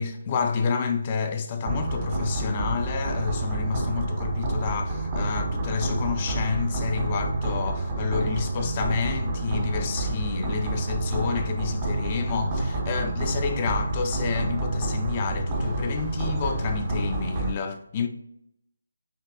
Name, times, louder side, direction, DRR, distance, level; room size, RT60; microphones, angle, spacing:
voice 1, 0.0-18.1, left 5 dB, 25° left, 0.5 m, -29 dB
sound 1, 1.6-17.5, right 2 dB, 25° right, 0.6 m, -28 dB
5.2 x 2.9 x 2.4 m
figure-of-eight pair, 155°, 0 cm